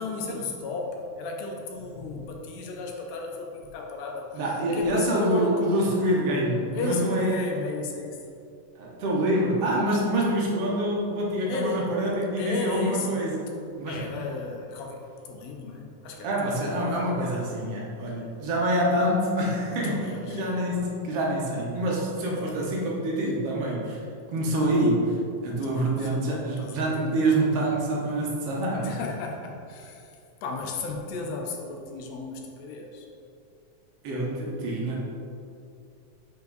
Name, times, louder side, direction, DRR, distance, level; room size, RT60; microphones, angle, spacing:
voice 1, 0.0-4.4 4.7-5.9 6.7-8.2 11.5-11.9 12.4-13.2 13.9-16.7 19.8-20.4 24.4-24.8 25.7-27.1 28.7-30.1 30.4-33.1, left 3 dB, 75° left, 1 dB, 1.8 m, -34 dB
voice 2, 4.3-7.4 8.8-13.4 13.8-14.0 16.2-24.0 24.3-25.2 25.4-28.9 34.0-35.0, right 1 dB, 65° right, -3 dB, 1.9 m, -26 dB
5.2 x 5.2 x 3.9 m, 2.5 s
omnidirectional pair, 3.3 m